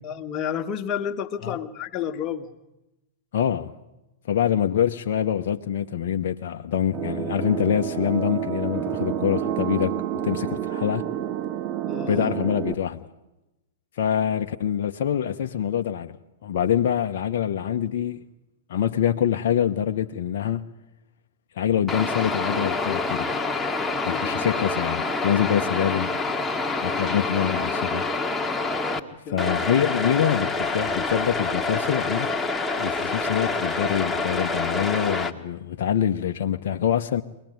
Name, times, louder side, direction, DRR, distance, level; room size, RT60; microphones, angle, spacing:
voice 1, 0.0-2.5 11.9-12.3 23.9-24.5 25.4-25.6 29.3-29.6, left 8 dB, 30° left, 1.9 m, -31 dB
voice 2, 3.3-3.7 4.3-9.9 10.2-11.1 12.1-13.0 14.0-16.2 16.4-18.2 18.7-20.6 21.6-23.4 24.0-26.2 26.8-28.0 29.3-32.3 32.8-37.2, left 9 dB, 55° left, 1.0 m, -25 dB
sound 1, 6.9-12.7, right 10 dB, 35° right, 1.7 m, -29 dB
sound 2, 21.9-29.0 29.4-35.3, left 3 dB, 10° left, 1.8 m, -27 dB
24.0 x 19.0 x 9.3 m
figure-of-eight pair, 100°, 0 cm